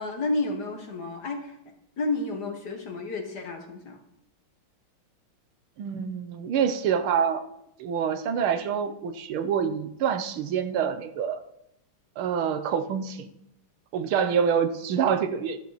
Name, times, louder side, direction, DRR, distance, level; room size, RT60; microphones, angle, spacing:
voice 1, 0.0-1.6 2.0-4.0, left 2 dB, 50° left, 5 dB, 2.0 m, -31 dB
voice 2, 5.8-7.5 7.8-11.4 12.2-13.3 13.9-15.6, right 7 dB, 80° right, 10 dB, 1.7 m, -26 dB
13.0 x 12.5 x 4.2 m, 0.80 s
omnidirectional pair, 2.3 m